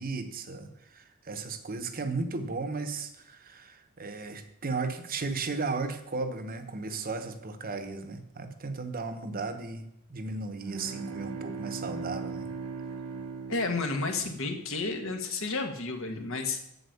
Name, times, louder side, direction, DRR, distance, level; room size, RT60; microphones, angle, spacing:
voice 1, 0.0-9.8 10.1-12.5, right 3 dB, 45° right, 9 dB, 1.0 m, -35 dB
sound 1, 10.6-14.6, right 5 dB, 75° right, 0.9 m, -39 dB
voice 2, 13.5-16.6, left 3 dB, 65° left, 4 dB, 1.6 m, -31 dB
8.0 x 7.6 x 7.0 m, 0.78 s
head